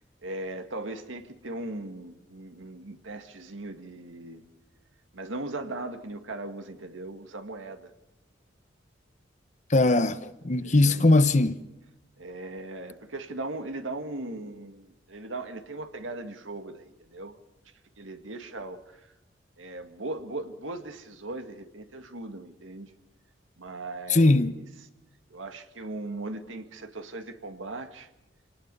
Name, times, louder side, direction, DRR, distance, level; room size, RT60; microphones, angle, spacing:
voice 1, 0.2-4.4 5.1-7.9 10.6-11.0 12.2-17.4 18.0-19.0 19.6-22.9 23.6-24.6 25.3-28.1, right 2 dB, 85° right, 2.0 m, -38 dB
voice 2, 9.7-11.6 24.1-24.6, left 2 dB, 40° left, 0.9 m, -21 dB
27.0 x 19.5 x 5.4 m
head